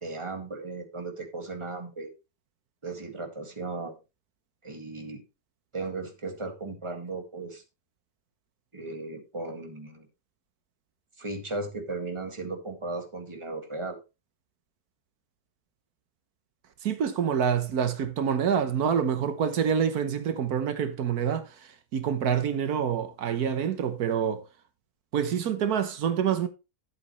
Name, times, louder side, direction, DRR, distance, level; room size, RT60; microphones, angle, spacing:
voice 1, 0.0-2.1 2.8-4.0 4.6-5.2 5.7-7.6 8.7-10.1 11.2-14.0, right 3 dB, 20° right, 1.9 m, -36 dB
voice 2, 16.8-24.4 25.1-26.5, right 8 dB, 85° right, 1.5 m, -27 dB
11.5 x 7.9 x 3.1 m
omnidirectional pair, 1.6 m